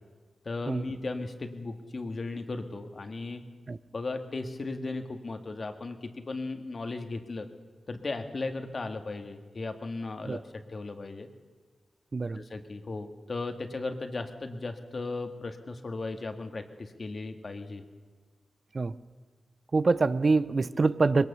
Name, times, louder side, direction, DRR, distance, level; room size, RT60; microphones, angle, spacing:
voice 1, 0.4-3.4 3.9-7.5 7.9-10.4 10.7-11.3 12.3-17.8, left 3 dB, 50° left, 7 dB, 1.8 m, -36 dB
voice 2, 19.7-21.3, right 3 dB, 50° right, 15 dB, 0.6 m, -25 dB
21.5 x 18.5 x 6.9 m, 1.4 s
cardioid pair, 70°, 0 cm